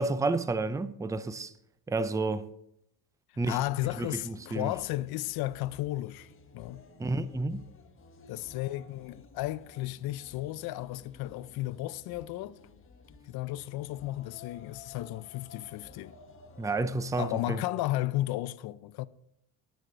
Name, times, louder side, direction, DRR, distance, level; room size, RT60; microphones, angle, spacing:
voice 1, 0.0-1.5 1.9-2.5 3.4-3.6 4.0-4.7 7.0-7.7 16.6-17.6, right 3 dB, 10° right, 0.5 m, -30 dB
sound 1, 3.4-17.4, left 4 dB, 30° left, 1.2 m, -54 dB
voice 2, 3.5-6.8 8.3-12.6 13.3-16.1 17.2-19.1, left 16 dB, 70° left, 0.6 m, -34 dB
9.3 x 9.1 x 5.0 m
cardioid pair, 110°, 39 cm